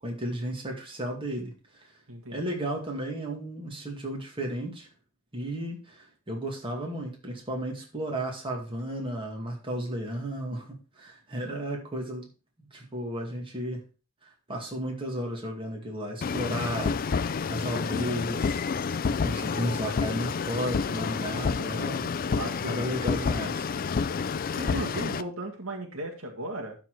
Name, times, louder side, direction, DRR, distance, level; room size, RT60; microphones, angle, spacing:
voice 1, 0.0-1.9 2.3-4.9 5.3-12.3 12.7-13.8 14.2-18.6 19.1-22.1 22.7-23.7, right 1 dB, 25° right, 0 dB, 2.2 m, -34 dB
voice 2, 2.1-2.4 22.3-23.0 24.5-26.8, right 1 dB, 85° right, 2 dB, 1.8 m, -36 dB
sound 1, 16.2-25.2, left 5 dB, 45° left, 0.4 m, -29 dB
12.0 x 4.2 x 4.8 m, 0.33 s
head